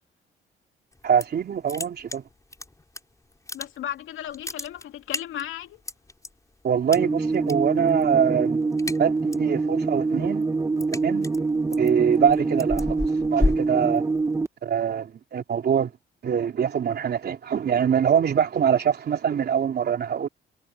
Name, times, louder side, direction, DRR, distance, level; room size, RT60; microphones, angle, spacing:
sound 1, 0.9-1.4 1.7-3.0 3.3-4.0 4.3-6.3 6.9-7.5 7.8-8.2 8.5-9.5 9.9-14.4, left 2 dB, 15° left, 4.9 m, -31 dB
voice 1, 1.0-2.2 6.6-8.6 9.0-10.5 11.0-11.3 11.8-13.0 13.3-14.0 14.6-15.9 16.2-20.3, right 8 dB, 55° right, 3.5 m, -23 dB
voice 2, 3.5-5.8, left 11 dB, 85° left, 2.7 m, -35 dB
sound 2, 7.0-14.5, right 3 dB, 15° right, 0.7 m, -25 dB
cardioid pair, 90°, 20 cm